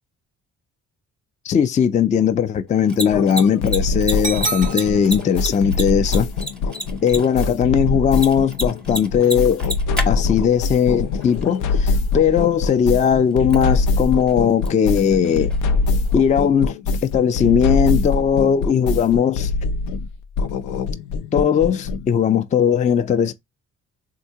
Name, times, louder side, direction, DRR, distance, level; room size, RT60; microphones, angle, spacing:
voice 1, 1.4-6.3 7.0-9.7 10.0-15.5 16.1-16.8 17.0-19.5 21.3-23.3, left 8 dB, 25° left, 0.3 m, -18 dB
Mechanisms, 2.7-16.3, right 1 dB, 5° left, 0.8 m, -34 dB
sound 1, 3.1-22.1, left 3 dB, 90° left, 0.5 m, -23 dB
sound 2, 4.2-5.3, right 4 dB, 25° right, 0.5 m, -28 dB
3.6 x 2.2 x 2.7 m
cardioid pair, 90°, 30 cm